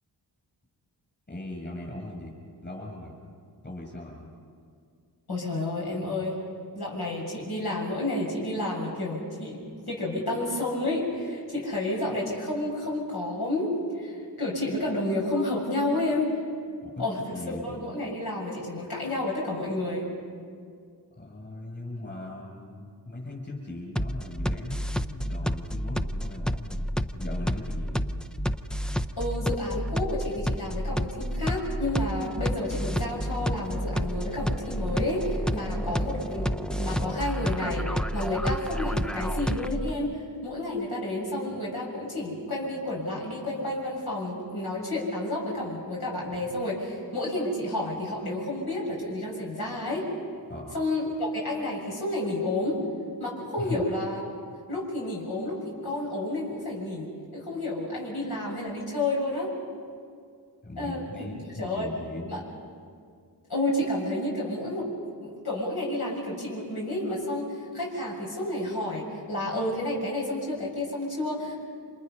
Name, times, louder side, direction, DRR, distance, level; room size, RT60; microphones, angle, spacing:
voice 1, 1.3-2.3 2.6-3.1 3.6-4.3 16.8-17.0 17.3-17.8 21.2-28.1 35.8-35.9 50.5-50.8 53.6-53.8 60.6-62.4, left 1 dB, 25° left, -1 dB, 7.1 m, -39 dB
voice 2, 5.3-6.4 6.7-9.6 9.9-16.3 17.0-20.1 29.2-50.1 50.7-52.8 53.2-54.3 54.7-59.5 60.8-61.3 61.6-61.9 62.3-62.4 63.5-71.6, left 1 dB, 65° left, -4 dB, 7.2 m, -30 dB
sound 1, 24.0-39.9, equal, ahead, 0.5 m, -30 dB
29.5 x 27.0 x 5.6 m, 2.2 s
wide cardioid pair, 105°, 41 cm